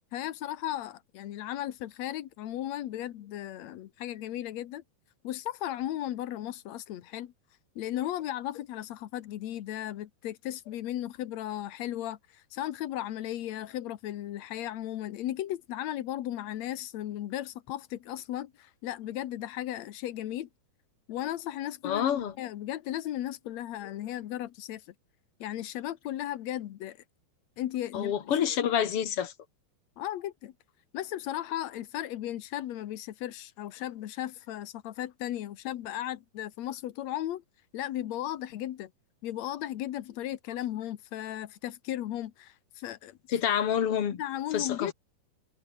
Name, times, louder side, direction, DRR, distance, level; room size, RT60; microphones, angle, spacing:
voice 1, 0.1-4.8 5.2-7.3 7.7-20.5 21.1-24.8 25.4-27.0 27.6-28.1 28.6-28.7 30.0-30.5 30.9-37.4 37.7-38.9 39.2-43.2 44.2-44.9, left 13 dB, 85° left, 1.5 m, -36 dB
voice 2, 21.8-22.3 27.9-29.3 43.3-44.2 44.5-44.9, left 9 dB, 45° left, 2.2 m, -28 dB
omnidirectional pair, 4.8 m